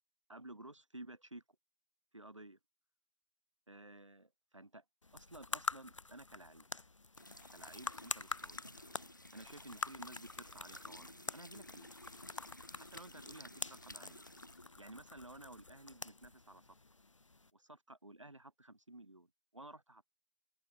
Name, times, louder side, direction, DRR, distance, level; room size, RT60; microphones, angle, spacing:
voice 1, 0.3-1.4 2.1-2.6 3.7-4.8 5.1-6.6 7.5-8.6 9.3-11.9 12.7-14.2 14.8-16.7 17.5-20.1, right 2 dB, 80° right, 1.6 m, -54 dB
sound 1, 5.0-17.5, left 3 dB, 90° left, 0.6 m, -46 dB
sound 2, 7.2-16.8, left 1 dB, 40° left, 0.4 m, -55 dB
figure-of-eight pair, 170°, 16 cm